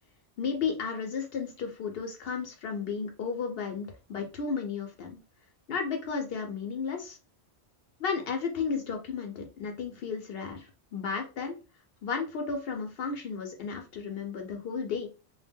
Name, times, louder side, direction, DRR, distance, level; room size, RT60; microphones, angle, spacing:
voice 1, 0.4-5.2 5.7-7.2 8.0-11.6 12.0-15.1, left 5 dB, 65° left, 4 dB, 0.7 m, -33 dB
2.1 x 2.0 x 3.4 m, 0.32 s
omnidirectional pair, 1.2 m